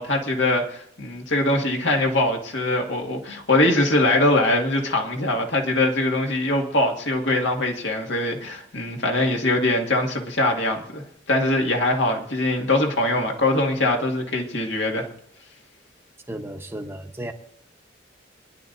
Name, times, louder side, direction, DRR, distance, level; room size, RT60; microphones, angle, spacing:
voice 1, 0.0-15.1, left 1 dB, 65° left, 1 dB, 2.1 m, -22 dB
voice 2, 16.3-17.3, right 1 dB, 15° right, 4 dB, 1.1 m, -34 dB
25.0 x 11.0 x 2.7 m, 0.65 s
head